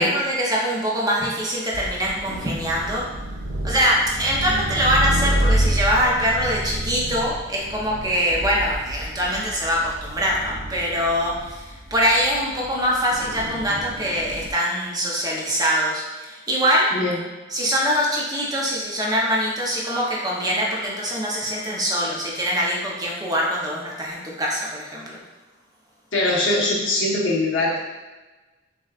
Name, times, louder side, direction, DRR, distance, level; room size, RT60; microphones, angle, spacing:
voice 1, 0.0-3.0 3.6-16.9 17.5-25.2, equal, 20° right, -4 dB, 0.7 m, -23 dB
sound 1, 1.7-14.5, right 1 dB, 80° right, 0.5 m, -29 dB
voice 2, 26.1-27.8, left 2 dB, 75° left, -5 dB, 1.0 m, -22 dB
6.1 x 2.3 x 2.4 m, 1.2 s
head